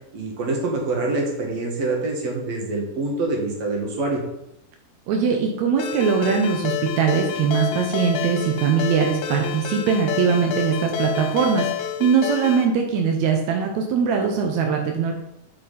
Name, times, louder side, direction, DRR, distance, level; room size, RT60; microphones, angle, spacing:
voice 1, 0.1-4.2, right 2 dB, 55° right, 1 dB, 2.4 m, -25 dB
voice 2, 5.1-15.1, right 6 dB, 75° right, 2 dB, 1.7 m, -21 dB
Ringtone, 5.8-12.7, left 9 dB, 90° left, 2.6 m, -29 dB
8.7 x 5.7 x 4.2 m, 0.85 s
omnidirectional pair, 4.1 m